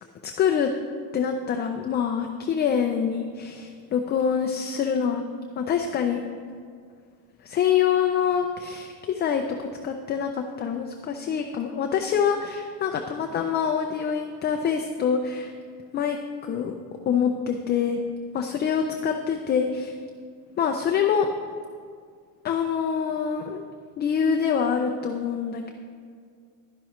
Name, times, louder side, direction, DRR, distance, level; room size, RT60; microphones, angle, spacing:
voice 1, 0.2-0.7 1.1-5.2 5.6-6.2 7.4-15.5 15.9-16.7 17.1-18.0 18.3-19.9 20.6-21.3 22.4-23.7 24.0-25.7, left 7 dB, 30° left, 4 dB, 0.4 m, -25 dB
11.5 x 10.5 x 3.1 m, 2.1 s
cardioid pair, 160°, 38 cm